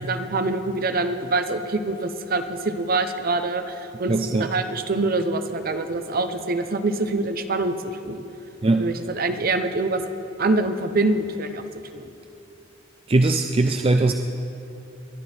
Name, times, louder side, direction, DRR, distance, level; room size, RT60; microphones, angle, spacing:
voice 1, 0.0-7.7 8.0-8.2 8.8-10.0 10.4-11.6 11.9-12.1, right 2 dB, 50° right, 8 dB, 0.8 m, -25 dB
voice 2, 4.1-4.5 8.6-9.0 13.1-14.1, right 2 dB, 30° right, 6 dB, 0.4 m, -20 dB
22.0 x 12.0 x 4.4 m, 2.8 s
head